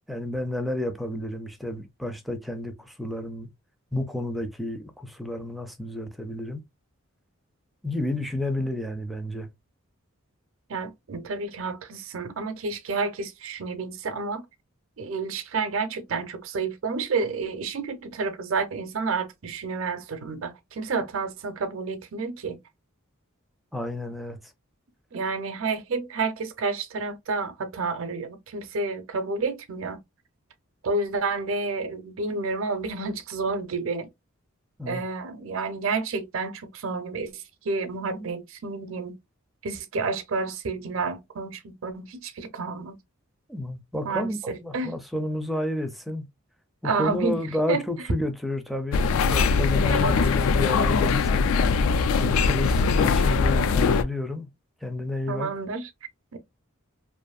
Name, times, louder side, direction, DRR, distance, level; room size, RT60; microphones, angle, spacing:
voice 1, 0.1-3.5 3.9-6.6 7.8-9.5 23.7-24.4 34.8-35.0 43.5-46.2 46.8-51.5 52.2-54.5 54.8-55.5, left 1 dB, ahead, 0.4 m, -31 dB
voice 2, 10.7-14.4 15.0-22.6 25.1-30.0 30.8-34.1 34.9-39.2 39.6-43.0 44.0-45.0 46.8-47.4 47.7-47.8 49.9-50.2 55.3-55.9 56.3-56.4, right 4 dB, 65° right, 0.6 m, -30 dB
sound 1, 48.9-54.0, left 5 dB, 75° left, 0.3 m, -21 dB
2.6 x 2.6 x 2.2 m
head